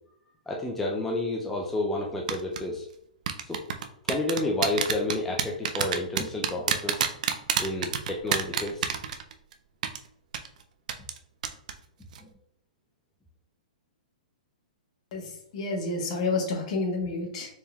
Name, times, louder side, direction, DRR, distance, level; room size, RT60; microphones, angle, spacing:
voice 1, 0.5-2.9 3.5-3.6 4.1-7.0 7.6-8.9 12.2-12.3, left 2 dB, 5° left, -2 dB, 0.4 m, -30 dB
sound 1, 2.3-2.6 3.3-9.5 9.8-10.0 10.3-10.5 10.9-11.2 11.4-11.7 12.0-12.2, right 8 dB, 65° right, 0.4 m, -27 dB
voice 2, 15.1-17.5, left 3 dB, 50° left, 1 dB, 1.1 m, -30 dB
4.3 x 3.4 x 2.3 m, 0.71 s
hypercardioid pair, 145°, 4 cm